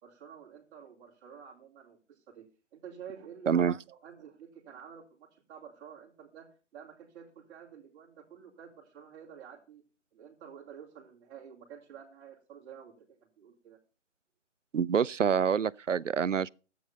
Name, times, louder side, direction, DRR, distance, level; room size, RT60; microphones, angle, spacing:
voice 1, 0.0-9.8 10.1-13.1 13.4-13.8, right 8 dB, 10° right, 2.4 m, -50 dB
voice 2, 3.5-3.8 14.7-16.5, right 7 dB, 85° right, 0.6 m, -26 dB
14.0 x 8.8 x 5.6 m
figure-of-eight pair, 155°, 36 cm